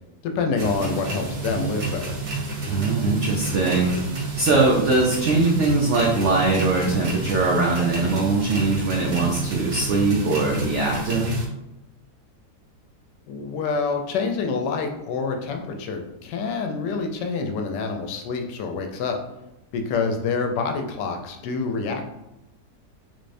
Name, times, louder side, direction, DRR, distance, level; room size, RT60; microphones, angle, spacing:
voice 1, 0.2-2.2 13.3-19.2 19.7-22.1, left 4 dB, 85° left, 4 dB, 1.2 m, -27 dB
sound 1, 0.6-11.5, right 3 dB, 60° right, 1.3 m, -30 dB
voice 2, 2.6-3.9 4.4-11.3, right 3 dB, 80° right, -1 dB, 0.6 m, -21 dB
3.7 x 2.6 x 3.2 m, 0.93 s
omnidirectional pair, 1.8 m